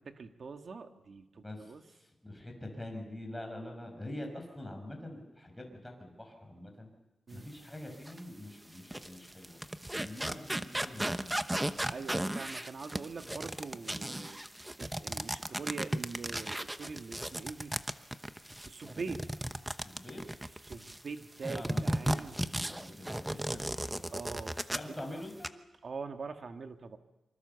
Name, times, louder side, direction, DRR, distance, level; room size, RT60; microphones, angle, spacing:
voice 1, 0.0-1.8 7.3-7.5 11.9-14.4 14.8-17.7 18.7-19.2 20.7-22.3 23.3-23.7 24.1-24.9 25.8-27.0, right 4 dB, 50° right, 6 dB, 1.9 m, -43 dB
voice 2, 1.4-6.9 7.3-9.6 10.0-11.3 18.8-19.2 19.7-20.2 21.4-24.1 24.7-25.5, left 1 dB, 5° left, 2 dB, 6.0 m, -45 dB
sound 1, 8.1-8.2 8.7-21.0 21.4-25.0 25.3-25.5, right 1 dB, 10° right, 0.9 m, -35 dB
25.5 x 25.0 x 7.1 m, 1.0 s
wide cardioid pair, 120°, 0 cm